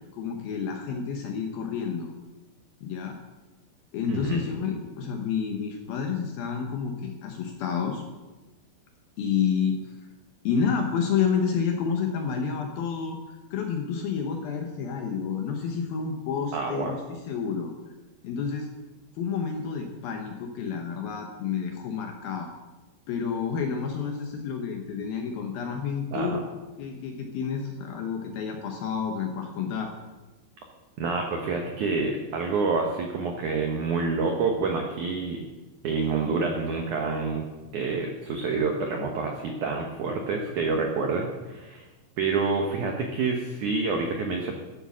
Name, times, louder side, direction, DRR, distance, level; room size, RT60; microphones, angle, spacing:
voice 1, 0.1-2.1 2.8-3.2 3.9-8.0 9.2-9.9 10.4-13.2 13.5-17.7 18.2-18.7 19.2-22.5 23.1-26.5 26.8-29.9, left 6 dB, 70° left, 3 dB, 2.4 m, -29 dB
voice 2, 4.1-4.4 16.5-16.9 26.1-26.4 31.0-35.4 35.8-37.4 37.7-41.9 42.2-44.5, right 4 dB, 85° right, 2 dB, 1.7 m, -27 dB
14.5 x 8.0 x 6.2 m, 1.2 s
omnidirectional pair, 5.4 m